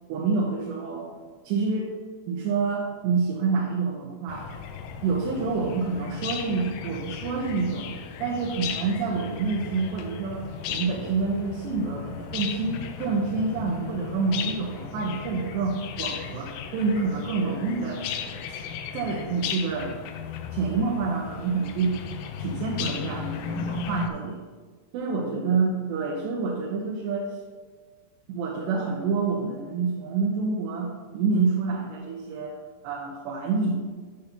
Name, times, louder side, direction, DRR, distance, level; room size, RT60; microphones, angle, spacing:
voice 1, 0.1-1.2 1.4-1.9 2.3-4.5 5.0-7.9 8.2-18.6 18.9-20.0 20.5-22.0 22.4-24.4 24.9-27.3 28.3-32.5 32.8-33.8, right 4 dB, 85° right, -2 dB, 3.1 m, -27 dB
sound 1, 4.3-24.1, left 7 dB, 85° left, 2.0 m, -36 dB
12.5 x 6.8 x 2.8 m, 1.5 s
omnidirectional pair, 4.9 m